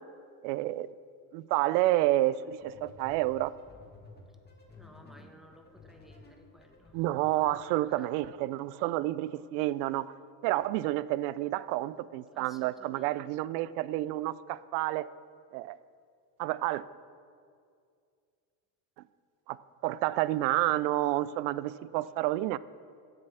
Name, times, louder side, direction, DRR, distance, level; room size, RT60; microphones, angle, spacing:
voice 1, 0.4-0.9 1.3-3.5 6.9-10.1 10.4-15.1 15.5-15.8 16.4-16.8 19.5-22.6, right 16 dB, 75° right, 18 dB, 0.5 m, -29 dB
sound 1, 2.4-7.6, left 3 dB, 20° left, 2.1 m, -54 dB
voice 2, 4.8-7.0 7.4-8.1 12.3-13.2, equal, ahead, 3 dB, 1.2 m, -57 dB
9.0 x 7.8 x 7.0 m, 2.3 s
supercardioid pair, 90°, 48 cm